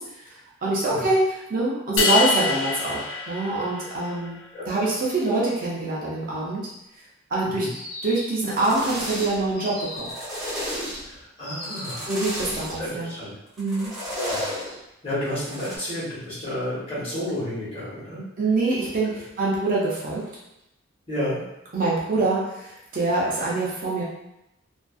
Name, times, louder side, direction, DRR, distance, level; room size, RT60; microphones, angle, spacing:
voice 1, 0.0-4.4 4.7-6.7 7.3-7.7 8.0-10.1 12.1-13.1 13.6-13.9 18.4-20.2 21.7-24.0, right 2 dB, 40° right, -5 dB, 0.5 m, -25 dB
sound 1, 2.0-4.3, left 5 dB, 55° left, 0.4 m, -25 dB
sound 2, 7.7-8.5 9.5-10.3 11.4-12.1, left 1 dB, 80° left, 0.8 m, -37 dB
sound 3, 8.3-9.5 9.8-11.2 11.6-12.8 13.6-14.7 15.3-15.7, equal, ahead, 0.7 m, -32 dB
voice 2, 11.1-12.1 12.8-13.3 14.1-14.4 15.0-18.2 19.0-19.1 21.1-21.4, left 1 dB, 30° left, -11 dB, 1.2 m, -31 dB
2.5 x 2.2 x 2.3 m, 0.87 s
head